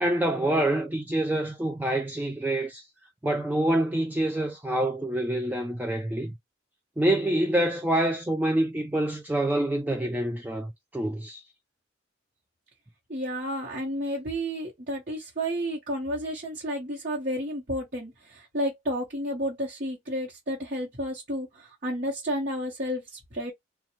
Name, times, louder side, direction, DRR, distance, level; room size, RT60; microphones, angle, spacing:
voice 1, 0.0-2.9 3.2-6.3 7.0-11.4, right 1 dB, 10° right, 0.3 m, -26 dB
voice 2, 13.1-23.5, equal, 45° right, 1.0 m, -31 dB
2.6 x 2.3 x 2.9 m
head